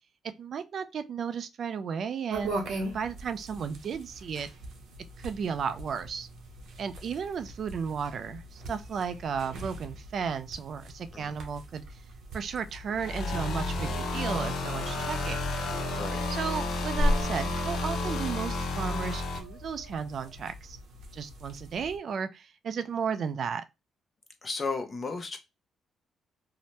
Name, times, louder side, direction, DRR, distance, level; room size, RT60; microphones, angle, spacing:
voice 1, 0.4-4.5 5.2-6.3 6.8-11.8 12.3-15.4 16.3-20.8 21.1-23.6, right 6 dB, 55° right, 0.3 m, -34 dB
sound 1, 2.3-22.0, equal, 75° right, 0.7 m, -39 dB
sound 2, 12.9-19.4, left 2 dB, 70° left, 0.7 m, -31 dB
sound 3, 14.5-20.3, right 7 dB, 40° right, 0.8 m, -45 dB
voice 2, 24.4-25.4, left 4 dB, 35° left, 0.7 m, -34 dB
2.7 x 2.0 x 3.1 m
cardioid pair, 90°, 0 cm